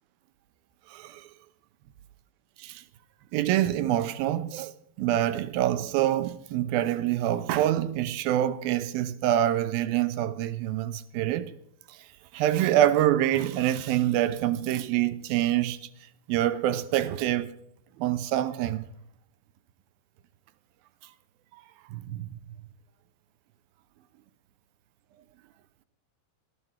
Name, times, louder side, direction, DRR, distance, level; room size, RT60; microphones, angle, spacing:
voice 1, 0.9-1.3 2.6-2.8 3.3-4.7 5.0-11.5 11.9-12.0 12.3-15.9 16.3-17.6 18.0-18.9 21.9-22.3, right 12 dB, 80° right, 2.6 m, -26 dB
18.0 x 14.0 x 4.4 m
omnidirectional pair, 4.4 m